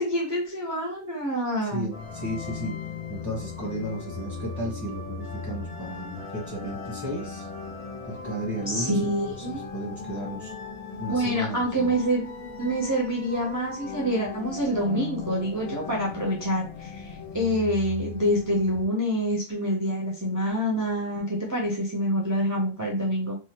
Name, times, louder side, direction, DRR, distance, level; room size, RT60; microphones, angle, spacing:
voice 1, 0.0-1.9 8.7-9.7 11.0-12.3 12.6-23.3, equal, 20° right, -3 dB, 0.6 m, -26 dB
voice 2, 1.7-7.5 8.0-10.5 11.0-12.0, right 1 dB, 20° left, -3 dB, 0.9 m, -34 dB
sound 1, 1.9-18.9, left 5 dB, 50° left, 0.5 m, -38 dB
3.3 x 2.2 x 2.9 m, 0.33 s
omnidirectional pair, 1.1 m